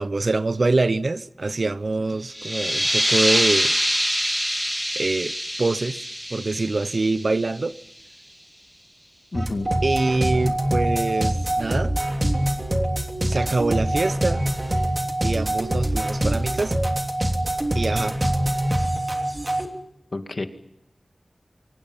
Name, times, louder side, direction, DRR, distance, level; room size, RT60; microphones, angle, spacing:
voice 1, 0.0-3.7 5.0-5.3 5.6-6.0 6.3-7.8 9.8-11.9 13.3-14.4 15.2-16.8 17.7-18.2, right 3 dB, 60° right, 1.0 m, -24 dB
sound 1, 2.3-7.7, equal, 5° right, 2.2 m, -25 dB
voice 2, 9.3-9.7 20.1-20.5, left 2 dB, 55° left, 2.4 m, -28 dB
sound 2, 9.3-19.6, right 1 dB, 30° right, 3.1 m, -24 dB
29.0 x 25.0 x 5.7 m
wide cardioid pair, 75°, 0 cm